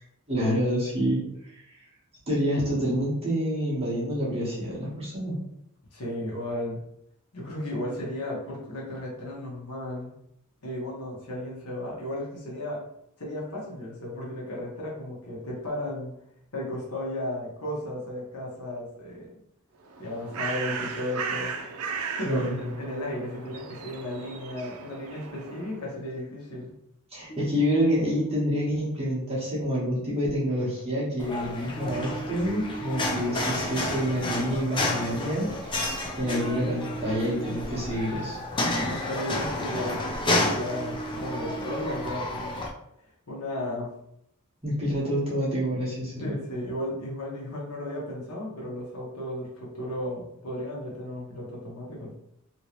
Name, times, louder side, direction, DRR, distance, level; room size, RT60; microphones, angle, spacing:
voice 1, 0.3-1.8 2.3-5.4 22.2-22.6 27.1-35.9 36.2-38.4 44.6-46.4, equal, 25° right, -8 dB, 1.1 m, -28 dB
voice 2, 5.9-6.8 7.3-10.1 10.6-12.8 13.2-16.2 16.5-19.3 20.0-21.5 22.1-26.7 38.9-42.6 43.3-43.9 46.2-52.1, left 1 dB, 90° left, -4 dB, 1.2 m, -34 dB
Bird, 19.8-25.9, right 5 dB, 70° right, 0.5 m, -36 dB
sound 1, 27.3-28.7 31.8-33.1 36.2-37.6 40.7-42.1, right 4 dB, 45° left, 1.0 m, -38 dB
sound 2, 31.2-42.7, left 2 dB, 20° left, 0.5 m, -31 dB
3.0 x 2.8 x 3.0 m, 0.75 s
head